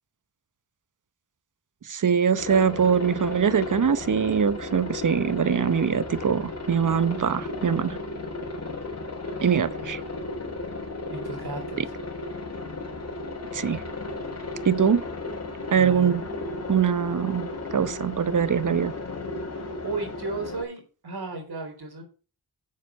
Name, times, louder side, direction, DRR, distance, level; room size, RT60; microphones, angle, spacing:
voice 1, 1.9-8.0 9.4-10.0 11.8-11.9 13.5-13.8 14.6-15.0 15.7-16.2 16.7-18.9, right 7 dB, 50° right, 0.8 m, -23 dB
Aircraft, 2.3-20.6, left 3 dB, 40° left, 3.7 m, -34 dB
voice 2, 11.1-11.8 15.7-16.1 19.5-22.0, right 3 dB, 70° right, 3.9 m, -34 dB
7.3 x 6.4 x 6.7 m
cardioid pair, 45°, 41 cm